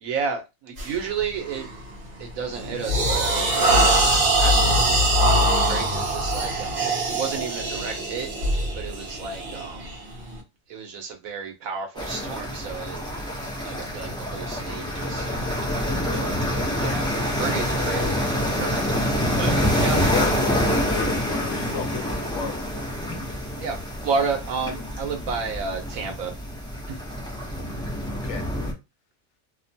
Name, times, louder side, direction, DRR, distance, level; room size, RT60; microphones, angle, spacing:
voice 1, 0.0-1.7 2.2-3.4 3.8-5.1 5.4-8.3 8.7-10.0 10.7-13.0 13.6-15.3 15.7-16.3 16.8-17.1 17.4-18.1 18.4-18.9 19.4-19.5 19.8-20.1 23.6-23.8 24.0-26.3 26.9-27.0, right 5 dB, 85° right, 1.2 m, -31 dB
sound 1, 0.8-1.0 1.5-1.8 2.2-10.3, right 1 dB, 45° right, 0.9 m, -22 dB
sound 2, 12.0-28.7, equal, 5° left, 0.3 m, -26 dB
voice 2, 19.5-22.7 28.1-28.4, left 7 dB, 65° left, 0.9 m, -34 dB
2.8 x 2.2 x 2.7 m
omnidirectional pair, 1.4 m